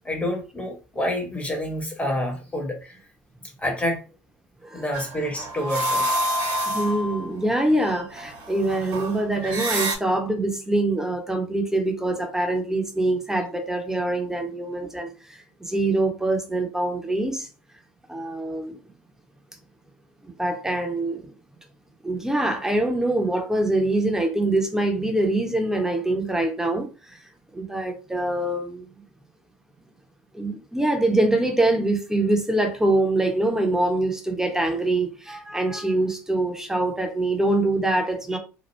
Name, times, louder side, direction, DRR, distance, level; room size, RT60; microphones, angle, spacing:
voice 1, 0.0-3.0 3.6-4.0 4.7-6.1 14.4-14.5, left 1 dB, 15° left, 1.1 m, -28 dB
sound 1, 4.9-10.0, right 1 dB, 60° right, 1.3 m, -28 dB
voice 2, 6.7-17.5 18.1-18.8 20.2-21.3 22.0-27.2 27.5-29.0 30.3-38.4, right 2 dB, 5° right, 0.9 m, -24 dB
3.0 x 2.3 x 3.2 m
hypercardioid pair, 70°, 8 cm